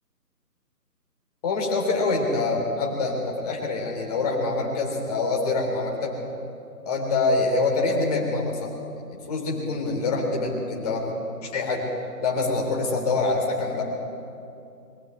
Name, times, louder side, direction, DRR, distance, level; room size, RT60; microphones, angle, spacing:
voice 1, 1.4-6.1 6.8-8.7 9.0-11.1 11.4-11.9 12.2-13.8, left 3 dB, 25° left, 0 dB, 3.6 m, -25 dB
23.0 x 13.0 x 9.2 m, 2.6 s
figure-of-eight pair, 160°, 49 cm